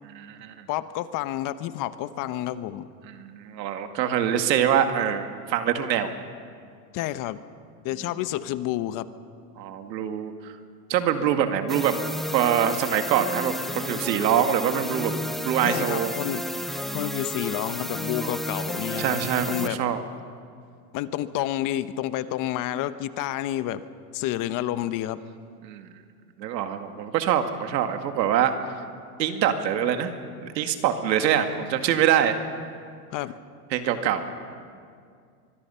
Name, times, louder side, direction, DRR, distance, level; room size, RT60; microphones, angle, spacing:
voice 1, 0.1-0.7 3.1-6.1 9.6-10.5 10.9-11.9 12.3-15.1 15.4-16.1 18.2-18.3 19.0-20.0 25.6-25.9 26.4-28.5 29.2-30.1 30.4-32.4 33.7-34.3, right 9 dB, 85° right, 7 dB, 2.1 m, -24 dB
voice 2, 0.7-2.9 6.9-7.4 7.8-9.1 11.2-11.3 15.6-16.4 16.9-19.2 19.5-19.8 20.9-23.8 24.1-25.2 33.1-33.3, left 13 dB, 40° left, 13 dB, 1.0 m, -29 dB
sound 1, 11.7-19.7, equal, ahead, 0.6 m, -32 dB
24.0 x 23.0 x 5.7 m, 2.2 s
supercardioid pair, 135°, 49 cm